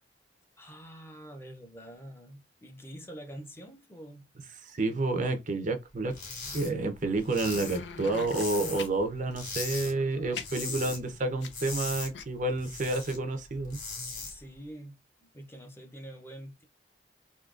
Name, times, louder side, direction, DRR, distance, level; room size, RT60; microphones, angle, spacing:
voice 1, 0.6-4.3 14.3-16.6, right 1 dB, 15° left, 0.6 m, -46 dB
voice 2, 4.6-6.1 6.5-13.8, right 2 dB, 45° right, 0.6 m, -30 dB
sound 1, 6.1-6.7 7.0-9.0 9.3-9.9 10.2-11.0 11.3-13.2 13.5-14.3, left 4 dB, 50° left, 1.9 m, -39 dB
sound 2, 7.4-8.9 9.8-11.8 12.1-12.2, left 5 dB, 80° left, 0.5 m, -42 dB
3.7 x 2.7 x 2.4 m
head